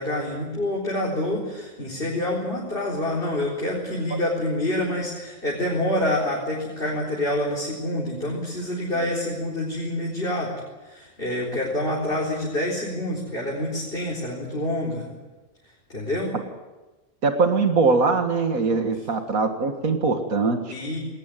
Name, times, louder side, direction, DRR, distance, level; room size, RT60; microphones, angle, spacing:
voice 1, 0.0-10.5 10.8-15.1 15.9-16.4 20.7-21.0, left 1 dB, 40° left, -4 dB, 4.5 m, -27 dB
voice 2, 17.2-20.6, right 4 dB, 85° right, 6 dB, 2.2 m, -21 dB
20.0 x 19.0 x 9.2 m, 1.1 s
omnidirectional pair, 1.4 m